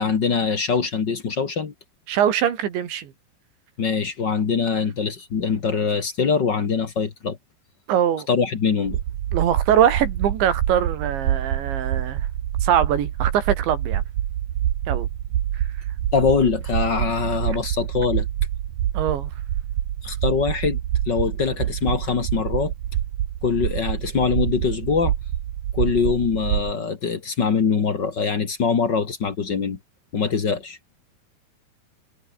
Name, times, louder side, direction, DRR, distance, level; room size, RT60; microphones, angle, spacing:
voice 1, 0.0-1.7 3.8-7.4 8.3-9.0 16.1-18.3 20.0-20.8 21.1-22.7 23.4-25.1 25.7-29.8 30.1-30.8, left 5 dB, 50° left, 1.2 m, -23 dB
voice 2, 2.1-3.1 7.9-8.3 9.3-12.3 12.6-14.0 14.9-15.1 18.9-19.3, right 9 dB, 85° right, 5.0 m, -22 dB
sound 1, 8.9-26.7, right 11 dB, 65° right, 1.8 m, -26 dB
omnidirectional pair, 5.1 m